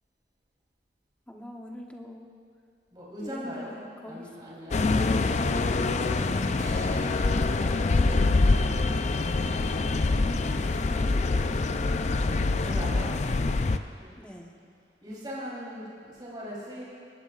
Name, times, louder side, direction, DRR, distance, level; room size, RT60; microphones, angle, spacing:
voice 1, 1.3-2.3 3.2-4.3 10.7-12.4 14.2-14.6, equal, 5° left, 0 dB, 1.0 m, -44 dB
voice 2, 2.9-3.7 4.1-5.5 7.2-8.8 10.5-10.8 12.6-13.1 14.0-14.1 15.0-16.8, equal, 25° right, -8 dB, 3.6 m, -41 dB
sound 1, 4.7-13.8, left 3 dB, 40° left, 0.4 m, -25 dB
Keyboard (musical), 6.6-10.0, left 1 dB, 55° right, 3.6 m, -48 dB
20.0 x 16.5 x 2.5 m, 2.5 s
head